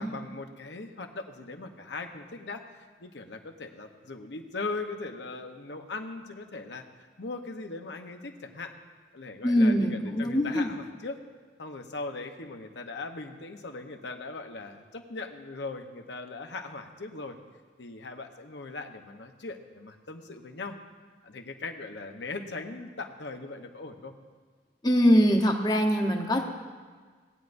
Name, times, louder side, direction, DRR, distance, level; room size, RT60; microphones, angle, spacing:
voice 1, 0.0-6.8 7.2-8.7 9.1-11.2 11.6-17.4 17.8-20.8 21.2-24.1, left 3 dB, 70° left, 5 dB, 0.9 m, -39 dB
voice 2, 9.4-10.7 24.8-26.4, equal, 25° left, 3 dB, 0.9 m, -22 dB
18.0 x 9.5 x 2.6 m, 1.5 s
head